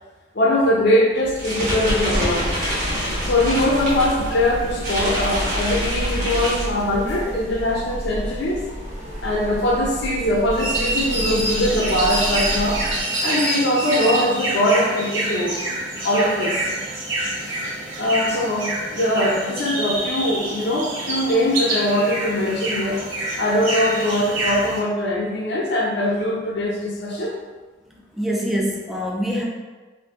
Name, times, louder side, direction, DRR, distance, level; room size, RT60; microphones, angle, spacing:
voice 1, 0.3-2.9 3.2-8.6 9.2-12.8 13.2-15.6 16.0-16.7 18.0-23.0 23.4-27.3, left 1 dB, 60° left, -1 dB, 0.6 m, -21 dB
sound 1, 1.2-7.2, equal, 60° right, 1.1 m, -26 dB
sound 2, 2.3-13.0, equal, 40° right, 0.8 m, -31 dB
sound 3, 10.5-24.8, right 1 dB, 85° right, 1.0 m, -26 dB
voice 2, 27.9-29.4, equal, ahead, -3 dB, 0.4 m, -25 dB
2.6 x 2.6 x 3.5 m, 1.3 s
head